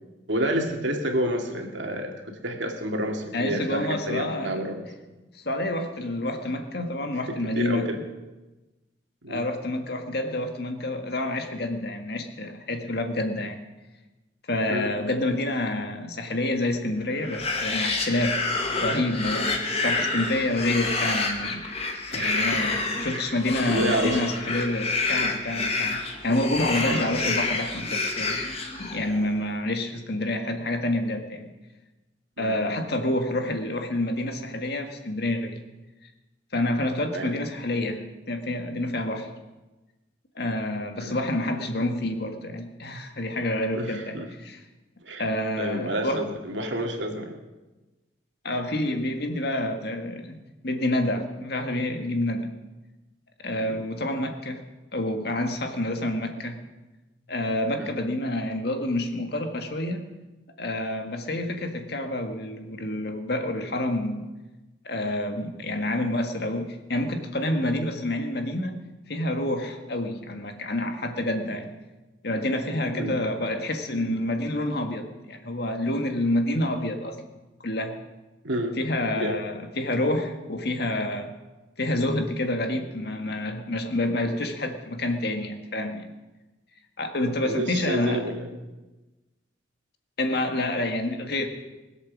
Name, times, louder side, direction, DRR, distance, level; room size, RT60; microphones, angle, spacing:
voice 1, 0.3-4.9 7.5-8.0 9.2-9.4 14.7-14.9 22.1-22.6 23.1-23.4 23.7-24.2 26.9-27.0 32.4-32.6 37.1-37.3 41.0-41.2 43.8-44.3 45.0-45.2 45.6-47.3 53.7-53.8 57.8-57.9 73.0-73.2 78.4-78.8 79.1-79.4 87.4-88.5, right 1 dB, 85° right, 3 dB, 2.4 m, -29 dB
voice 2, 3.3-4.6 5.3-7.8 9.3-13.6 14.5-21.6 22.1-28.4 28.8-31.5 32.4-35.6 36.5-39.3 40.4-44.6 45.2-46.3 48.4-52.5 53.4-54.6 54.9-56.6 57.3-60.0 60.6-64.2 64.8-68.8 69.1-71.7 72.2-77.2 77.6-77.9 78.8-81.3 81.8-86.1 87.0-88.2 90.2-91.5, left 1 dB, 60° left, 5 dB, 1.9 m, -28 dB
sound 1, 17.2-29.2, left 3 dB, 35° left, 1.9 m, -28 dB
21.0 x 8.1 x 7.5 m, 1.1 s
head